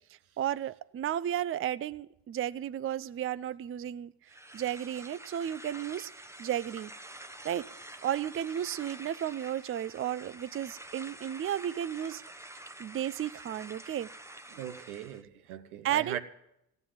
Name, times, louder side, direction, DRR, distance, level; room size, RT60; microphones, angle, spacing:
voice 1, 0.4-4.1 4.5-6.1 6.4-6.9 7.4-7.7 8.0-12.2 12.8-14.1 15.8-16.2, right 11 dB, 30° right, 15 dB, 0.5 m, -33 dB
sound 1, 4.3-15.2, right 1 dB, 5° right, 0.9 m, -48 dB
voice 2, 14.5-16.2, right 10 dB, 90° right, 6 dB, 1.1 m, -40 dB
14.0 x 9.6 x 7.6 m, 0.81 s
supercardioid pair, 60°, 44 cm